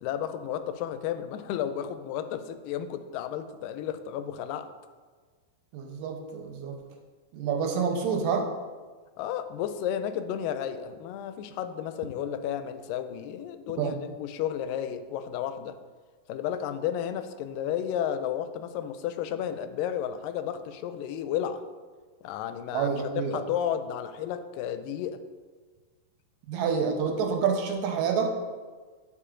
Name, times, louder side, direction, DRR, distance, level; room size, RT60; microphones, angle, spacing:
voice 1, 0.0-4.7 9.2-15.8 16.3-21.6 22.2-25.2, left 9 dB, 85° left, 10 dB, 2.2 m, -32 dB
voice 2, 5.7-6.8 7.3-8.5 13.8-14.0 22.7-23.4 26.5-28.3, right 6 dB, 90° right, 3 dB, 2.4 m, -28 dB
10.0 x 4.7 x 3.7 m, 1.4 s
omnidirectional pair, 3.9 m